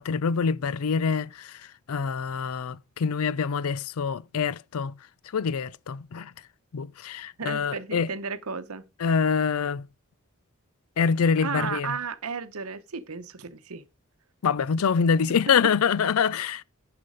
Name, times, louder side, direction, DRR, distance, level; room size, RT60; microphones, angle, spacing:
voice 1, 0.0-1.6 1.9-4.9 5.3-6.3 6.7-8.1 9.0-9.9 11.0-12.0 14.4-16.6, left 6 dB, 80° left, 0.4 m, -25 dB
voice 2, 7.4-8.9 11.4-13.8, right 5 dB, 80° right, 0.9 m, -34 dB
10.5 x 5.9 x 5.0 m
head